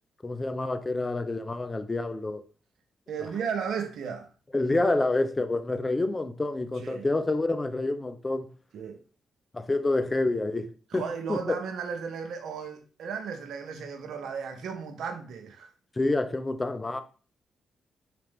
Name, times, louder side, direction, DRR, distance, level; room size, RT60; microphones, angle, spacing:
voice 1, 0.2-2.4 3.2-3.3 4.5-8.5 9.5-10.7 10.9-11.6 16.0-17.0, left 2 dB, 25° left, 0.5 m, -28 dB
voice 2, 3.1-4.3 6.8-7.1 8.7-9.0 10.9-15.7, right 6 dB, 75° right, 0.7 m, -35 dB
4.2 x 2.5 x 3.4 m
supercardioid pair, 50°, 0 cm